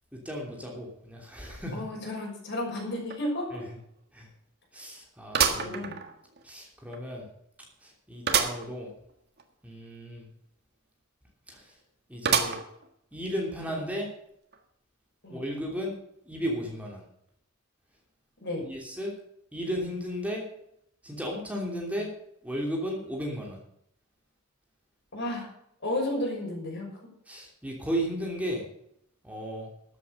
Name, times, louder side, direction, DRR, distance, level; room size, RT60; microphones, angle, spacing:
voice 1, 0.1-1.8 3.5-3.6 4.1-4.3 4.7-5.9 6.4-7.3 7.8-8.9 9.6-10.3 11.5-11.8 12.1-12.6 13.1-14.1 15.3-16.0 16.2-17.0 18.6-19.1 19.5-20.5 21.0-22.1 22.4-23.6 27.3-28.6 29.2-29.7, equal, 5° right, -1 dB, 2.9 m, -34 dB
voice 2, 1.7-3.6 5.3-6.0 13.7-13.8 15.2-15.4 18.4-18.7 25.1-25.5 25.8-26.9, left 1 dB, 60° left, -1 dB, 6.2 m, -33 dB
sound 1, 3.1-3.2 3.6-3.7 5.3-6.4 6.9-7.0 8.3-8.7 9.1-9.2 9.4-9.5 12.2-12.9 13.4-13.5 14.5-14.6, right 7 dB, 55° right, 1.6 m, -27 dB
13.0 x 8.3 x 6.5 m, 0.73 s
head